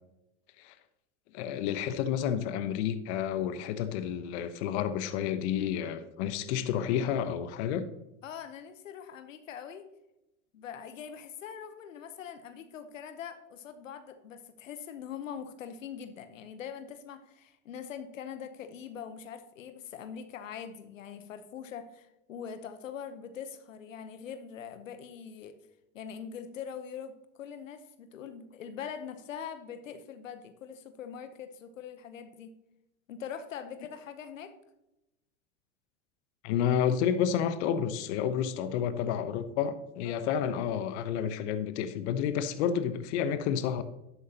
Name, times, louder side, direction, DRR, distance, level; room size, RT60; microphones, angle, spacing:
voice 1, 1.3-7.9 36.4-43.8, left 9 dB, 60° left, 1.0 m, -30 dB
voice 2, 8.2-9.9 10.5-25.6 25.9-32.5 33.1-34.6 40.0-40.3, left 8 dB, 85° left, 1.0 m, -43 dB
11.5 x 8.1 x 2.9 m
hypercardioid pair, 95°, 38 cm